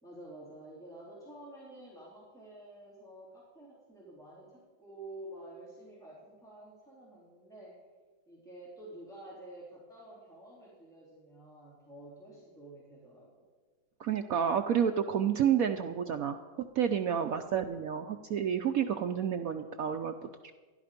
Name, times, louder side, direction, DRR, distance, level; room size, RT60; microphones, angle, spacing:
voice 1, 0.0-7.8 8.3-13.4 17.0-17.7, right 1 dB, ahead, -7 dB, 3.7 m, -50 dB
voice 2, 14.0-16.4 16.8-20.1 20.4-20.5, right 8 dB, 75° right, 6 dB, 0.8 m, -30 dB
15.0 x 11.5 x 5.1 m, 1.4 s
omnidirectional pair, 2.2 m